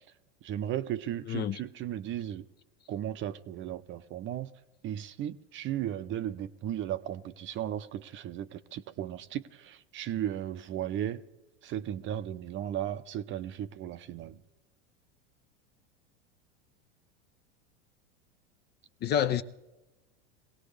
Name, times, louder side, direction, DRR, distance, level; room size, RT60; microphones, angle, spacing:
voice 1, 0.4-2.5 2.9-4.5 4.8-11.2 11.6-14.4, right 11 dB, 35° right, 0.6 m, -35 dB
voice 2, 1.3-1.6 19.0-19.4, left 9 dB, 30° left, 0.5 m, -28 dB
22.0 x 17.5 x 3.3 m
hypercardioid pair, 110°, 36 cm